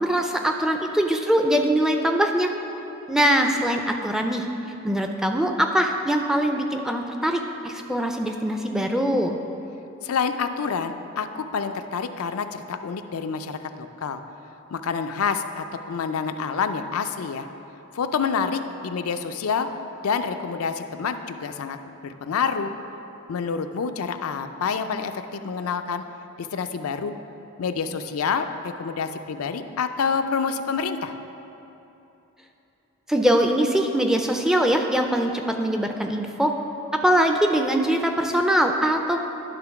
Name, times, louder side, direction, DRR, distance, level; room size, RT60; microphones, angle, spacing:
voice 1, 0.0-2.5 3.1-4.4 4.8-9.4 33.1-36.5 36.9-39.3, right 1 dB, ahead, 3 dB, 0.4 m, -22 dB
voice 2, 10.0-14.2 14.7-17.5 17.9-19.7 20.0-21.8 22.0-22.7 23.3-26.0 26.4-27.1 27.6-31.1, left 5 dB, 85° left, 8 dB, 0.4 m, -27 dB
11.0 x 3.7 x 5.8 m, 3.0 s
head